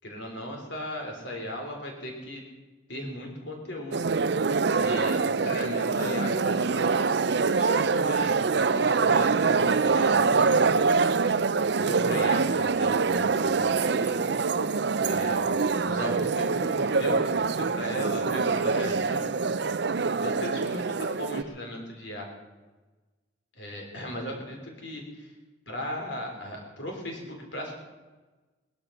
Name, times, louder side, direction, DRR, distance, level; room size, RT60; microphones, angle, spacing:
voice 1, 0.0-2.4 2.9-4.1 4.7-10.9 11.8-14.2 15.0-19.4 20.2-22.3 23.6-25.3 25.7-27.8, left 1 dB, 65° left, 1 dB, 4.0 m, -37 dB
sound 1, 3.9-21.4, right 4 dB, 55° right, 0.5 m, -25 dB
20.0 x 12.0 x 5.9 m, 1.2 s
head